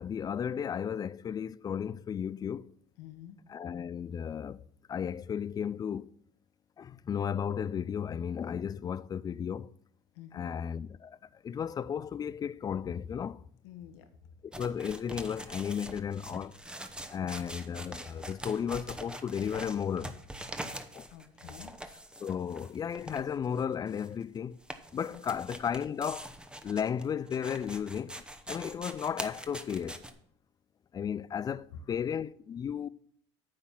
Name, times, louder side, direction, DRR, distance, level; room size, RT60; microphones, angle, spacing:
voice 1, 0.0-2.7 3.5-4.6 4.9-6.1 6.8-9.7 10.3-13.4 14.4-16.6 17.1-20.2 20.9-21.1 22.2-24.6 24.9-26.3 26.6-30.1 30.9-32.9, left 8 dB, 25° left, 0.3 m, -34 dB
voice 2, 3.0-3.4 10.1-10.5 13.6-14.1 21.1-21.7 25.1-25.4, left 11 dB, 80° left, 1.3 m, -49 dB
sound 1, 14.5-30.1, right 1 dB, 5° right, 0.9 m, -44 dB
9.6 x 4.0 x 7.3 m
supercardioid pair, 90°, 14 cm